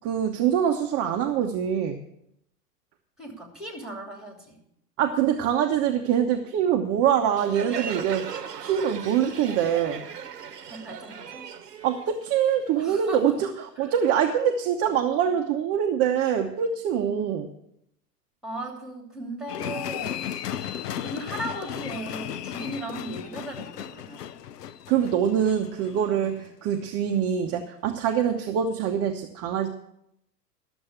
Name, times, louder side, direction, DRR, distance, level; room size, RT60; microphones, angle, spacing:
voice 1, 0.0-2.0 5.0-8.2 8.6-10.0 11.8-17.5 24.9-29.7, right 9 dB, 30° right, 4 dB, 0.9 m, -24 dB
voice 2, 3.2-4.6 10.7-11.5 12.8-13.4 13.8-13.9 17.0-17.3 18.4-24.2 25.7-25.8 26.2-26.4, right 1 dB, ahead, 2 dB, 2.9 m, -38 dB
Crowd, 7.4-12.8, right 7 dB, 80° right, 1.0 m, -37 dB
sound 1, 19.5-26.8 27.1-27.2, left 10 dB, 75° left, 0.7 m, -35 dB
12.5 x 7.1 x 6.8 m, 0.77 s
hypercardioid pair, 100°, 47 cm